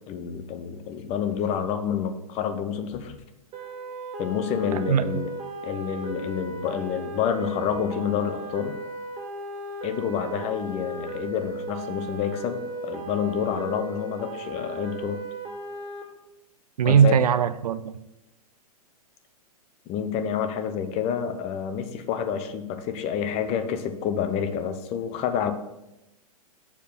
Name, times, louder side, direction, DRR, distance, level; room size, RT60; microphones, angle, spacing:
voice 1, 0.1-3.2 4.2-5.3 5.6-8.8 9.8-15.2 16.8-17.2 19.9-25.5, left 8 dB, 35° left, 0.8 m, -28 dB
sound 1, 3.5-16.0, right 2 dB, 35° right, 2.0 m, -36 dB
voice 2, 4.7-5.2 16.8-18.0, right 8 dB, 75° right, 0.6 m, -20 dB
7.0 x 4.9 x 5.5 m
hypercardioid pair, 120°, 19 cm